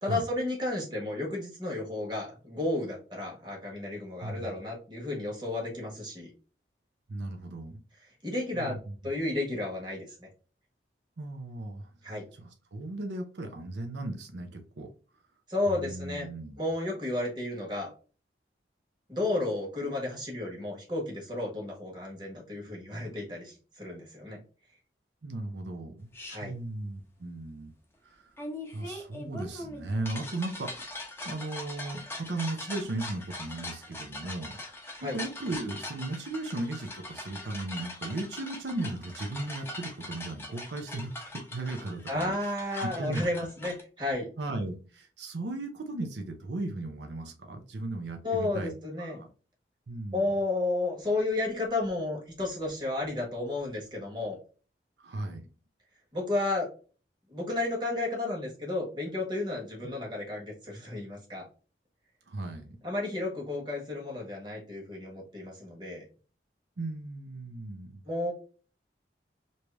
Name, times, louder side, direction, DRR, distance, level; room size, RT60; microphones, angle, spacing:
voice 1, 0.0-6.3 8.2-8.8 9.0-10.3 12.0-12.2 15.5-16.3 16.6-17.9 19.1-24.4 26.3-26.5 35.0-35.2 42.1-44.3 48.2-49.2 50.1-54.4 56.1-56.7 57.3-61.5 62.8-66.0 68.0-68.3, left 2 dB, 25° right, -2 dB, 1.3 m, -32 dB
voice 2, 4.2-4.6 7.1-7.8 8.5-8.9 11.2-14.9 15.7-16.6 25.2-26.1 26.4-27.7 28.0-28.3 28.7-30.8 31.2-42.3 43.0-43.2 44.4-48.7 49.0-49.3 49.9-50.3 55.0-55.5 62.3-62.8 66.8-68.0, right 2 dB, 80° right, 4 dB, 0.6 m, -36 dB
sound 1, 26.1-26.4 28.4-43.8, left 2 dB, 15° left, 0.8 m, -42 dB
3.2 x 2.7 x 3.4 m, 0.37 s
head